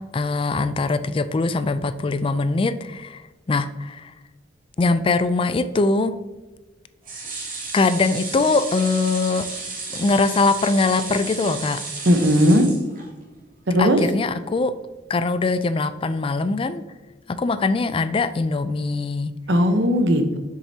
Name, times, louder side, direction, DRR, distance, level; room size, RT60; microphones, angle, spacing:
voice 1, 0.1-3.2 3.5-4.1 4.8-6.1 7.7-9.4 9.9-11.8 13.8-14.7 15.1-16.8 17.4-19.3, left 3 dB, 30° left, 12 dB, 0.3 m, -22 dB
sound 1, 7.0-13.4 13.8-13.9 14.2-14.3, right 3 dB, 50° right, 2.1 m, -33 dB
voice 2, 12.1-12.7 13.7-14.0 19.5-20.4, equal, 80° right, 6 dB, 1.0 m, -17 dB
7.5 x 6.7 x 2.8 m, 1.2 s
head